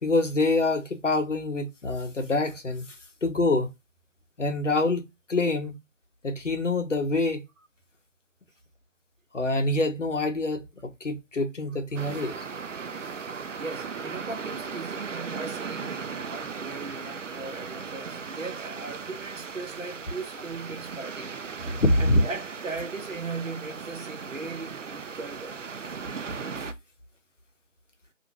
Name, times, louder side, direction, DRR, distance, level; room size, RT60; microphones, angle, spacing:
voice 1, 0.0-2.8 3.2-3.7 4.4-5.8 6.2-7.4 9.3-12.4 21.8-22.2, left 2 dB, 70° left, 0.8 m, -25 dB
sound 1, 11.9-26.7, right 5 dB, 70° right, 0.5 m, -37 dB
voice 2, 13.5-21.4 21.7-25.6, right 3 dB, 90° right, 0.8 m, -38 dB
2.5 x 2.5 x 2.9 m
figure-of-eight pair, 180°, 38 cm